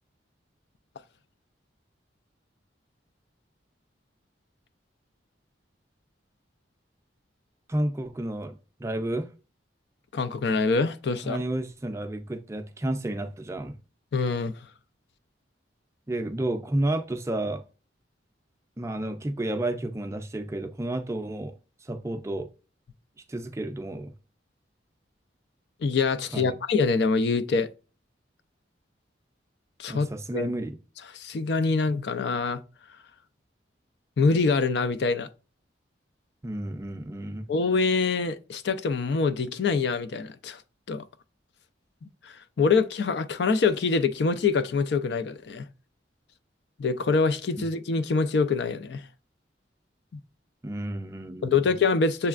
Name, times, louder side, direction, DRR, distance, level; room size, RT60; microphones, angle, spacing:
voice 1, 7.7-9.3 11.2-13.8 16.1-17.6 18.8-21.5 21.8-22.5 23.3-24.1 26.3-26.5 29.9-30.8 36.4-37.5 50.6-51.6, right 1 dB, 15° right, 0.4 m, -31 dB
voice 2, 10.1-11.4 14.1-14.5 25.8-27.7 29.8-30.1 30.3-30.5 31.1-32.6 34.2-35.3 37.5-40.6 40.9-41.0 42.2-45.7 46.8-49.1 50.1-50.2 51.4-52.3, left 4 dB, 65° left, 0.4 m, -25 dB
6.8 x 3.2 x 2.4 m
head